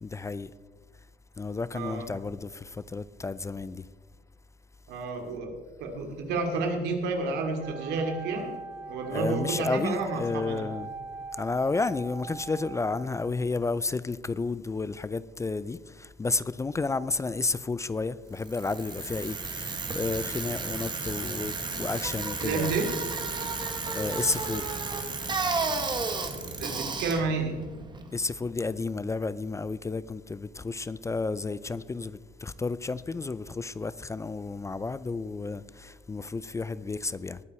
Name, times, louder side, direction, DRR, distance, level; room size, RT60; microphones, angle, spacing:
voice 1, 0.0-0.5 1.4-3.9 9.1-10.9 11.3-22.8 23.5-24.8 28.1-37.4, left 3 dB, 15° left, 0.4 m, -32 dB
voice 2, 1.7-2.1 4.9-5.5 5.8-8.5 8.9-10.6 22.4-22.9 26.4-27.5, right 4 dB, 85° right, 2.6 m, -30 dB
Wind instrument woodwind instrument, 7.6-13.5, right 4 dB, 65° right, 2.9 m, -42 dB
Bicycle, 18.4-28.5, right 3 dB, 25° right, 1.6 m, -33 dB
20.0 x 9.7 x 4.3 m
cardioid pair, 110°, 17 cm